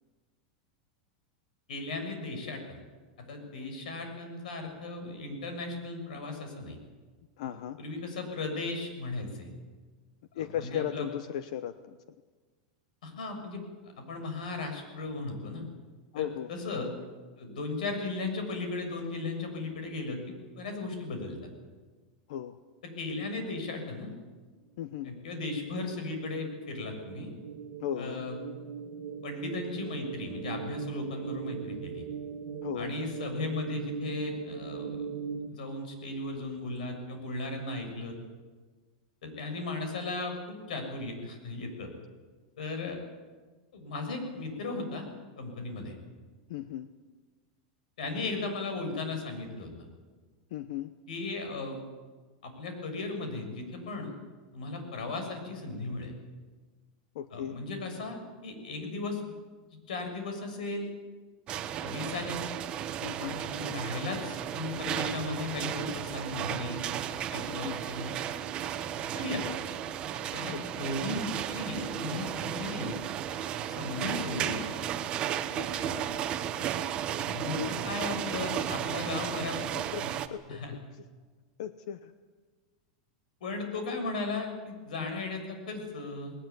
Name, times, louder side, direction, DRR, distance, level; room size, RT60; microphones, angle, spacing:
voice 1, 1.7-2.8 3.2-6.8 7.4-7.5 7.8-9.5 10.3-11.1 13.0-13.6 14.1-15.6 16.1-16.9 17.4-21.4 22.8-24.1 25.0-27.3 28.0-28.4 29.2-32.0 32.7-35.1 35.5-38.1 39.2-41.9 42.6-43.0 43.7-45.1 45.4-45.9 48.0-49.7 51.1-51.8 52.4-54.1 54.5-56.1 57.3-59.2 59.7-60.9 61.8-62.5 63.2-68.1 69.1-69.5 70.3-73.0 73.7-74.6 77.2-79.6 80.0-80.1 80.5-80.7 83.4-86.3, left 3 dB, 90° left, 5 dB, 6.8 m, -36 dB
voice 2, 7.4-7.8 10.4-12.0 16.1-16.5 22.3-22.6 24.8-25.1 27.8-28.2 32.6-32.9 46.5-46.9 50.5-50.9 57.1-57.6 63.0-63.4 67.5-67.8 70.5-70.6 75.6-76.2 77.4-77.8 79.9-80.6 81.6-82.1 85.0-85.1, left 11 dB, 60° left, 12 dB, 0.9 m, -37 dB
sound 1, 24.9-35.5, right 7 dB, 65° right, 1.7 m, -40 dB
sound 2, 61.5-80.3, right 10 dB, 25° right, 1.1 m, -34 dB
19.5 x 19.0 x 9.5 m, 1.4 s
supercardioid pair, 165°, 4 cm